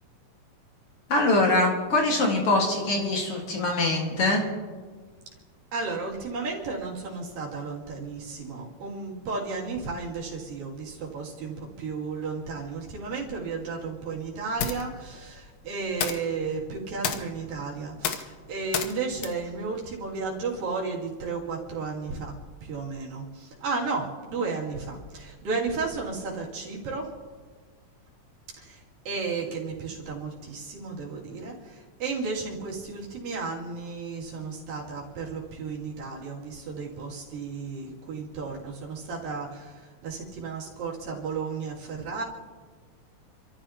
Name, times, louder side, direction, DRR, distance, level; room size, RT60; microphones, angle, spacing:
voice 1, 1.1-4.5, left 2 dB, 50° left, 0 dB, 2.4 m, -23 dB
voice 2, 5.7-22.3 22.6-27.1 28.6-42.2, right 4 dB, 85° right, -4 dB, 4.5 m, -33 dB
sound 1, 14.0-20.7, left 7 dB, 65° left, 1.8 m, -35 dB
30.0 x 13.5 x 2.9 m, 1.5 s
omnidirectional pair, 3.9 m